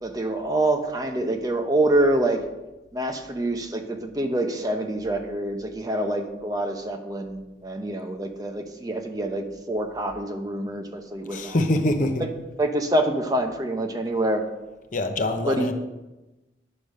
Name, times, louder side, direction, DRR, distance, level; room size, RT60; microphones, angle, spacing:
voice 1, 0.0-2.4 2.9-11.6 12.2-12.3 12.6-14.4 15.4-15.7, right 1 dB, 20° right, 5 dB, 0.7 m, -26 dB
voice 2, 11.3-12.3 14.9-15.7, left 1 dB, 45° left, 6 dB, 0.8 m, -24 dB
9.8 x 5.1 x 6.4 m, 1.1 s
head